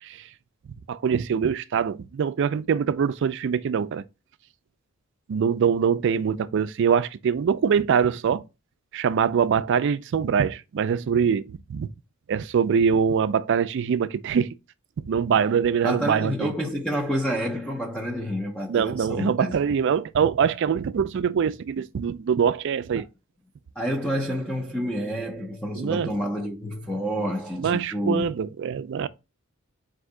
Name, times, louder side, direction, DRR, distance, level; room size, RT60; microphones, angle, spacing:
voice 1, 0.9-4.0 5.3-8.4 8.9-11.9 12.3-14.5 15.1-16.5 18.7-23.0 25.8-26.1 27.6-29.1, right 7 dB, 60° right, 0.3 m, -23 dB
voice 2, 15.8-19.5 23.8-28.2, equal, 5° left, 0.5 m, -28 dB
4.3 x 2.7 x 3.6 m
head